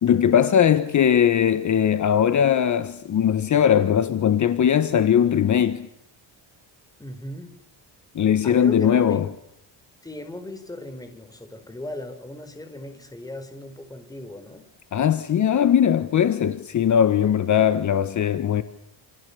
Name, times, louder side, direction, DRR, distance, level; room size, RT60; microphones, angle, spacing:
voice 1, 0.0-5.9 8.1-9.3 14.9-18.6, left 9 dB, 40° left, 1.4 m, -20 dB
voice 2, 7.0-7.6 8.4-9.2 10.0-14.6, left 1 dB, 10° left, 4.9 m, -37 dB
29.5 x 28.5 x 7.0 m
cardioid pair, 155°, 43 cm